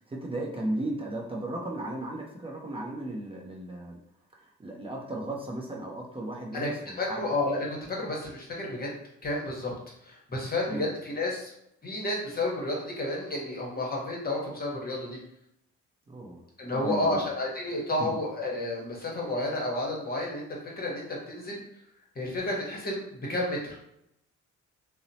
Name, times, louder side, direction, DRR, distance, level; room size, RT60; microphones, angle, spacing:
voice 1, 0.0-4.0 4.4-7.2 10.7-10.9 16.1-16.4 16.7-17.2, right 1 dB, 20° right, -2 dB, 0.5 m, -35 dB
voice 2, 7.0-8.9 9.2-9.7 10.0-11.5 11.8-15.2 16.6-21.6 22.1-23.8, left 2 dB, 30° left, -2 dB, 0.9 m, -31 dB
2.8 x 2.0 x 2.7 m, 0.77 s
cardioid pair, 90°, 30 cm